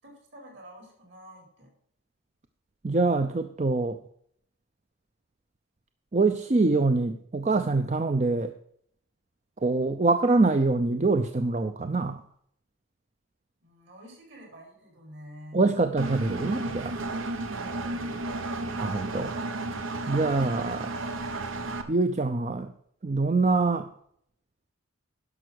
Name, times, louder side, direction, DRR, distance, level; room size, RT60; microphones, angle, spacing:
voice 1, 0.0-1.7 13.6-15.7 17.6-18.2, equal, 60° right, 0 dB, 4.6 m, -48 dB
voice 2, 2.8-4.0 6.1-8.5 9.6-12.2 15.5-17.0 18.8-19.4 20.1-20.9 21.9-22.7 23.0-23.9, right 3 dB, 35° right, 8 dB, 0.5 m, -24 dB
Engine, 16.0-21.8, right 2 dB, 75° right, 1.1 m, -33 dB
11.0 x 6.2 x 6.3 m, 0.66 s
head